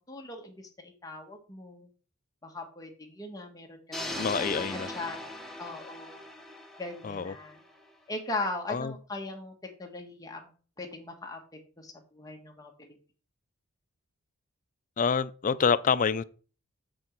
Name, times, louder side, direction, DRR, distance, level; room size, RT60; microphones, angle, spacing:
voice 1, 0.0-1.9 2.4-5.2 5.6-6.2 6.8-7.6 8.1-10.5 10.8-11.4 11.8-12.9, left 2 dB, 15° left, 1.4 m, -39 dB
sound 1, 3.9-7.9, left 1 dB, ahead, 0.9 m, -39 dB
voice 2, 4.2-4.9 7.0-7.3 8.7-8.9 15.0-16.2, left 6 dB, 35° left, 0.4 m, -27 dB
7.5 x 6.2 x 4.5 m
head